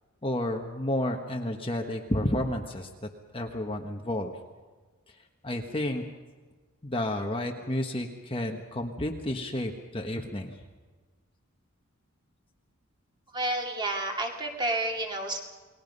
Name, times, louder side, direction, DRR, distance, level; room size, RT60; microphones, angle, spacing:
voice 1, 0.2-2.9 3.3-4.3 5.4-6.0 6.8-10.6, left 1 dB, 25° left, 3 dB, 1.4 m, -31 dB
voice 2, 13.3-15.4, right 2 dB, 20° right, 1 dB, 2.7 m, -30 dB
29.5 x 21.0 x 5.4 m, 1.4 s
head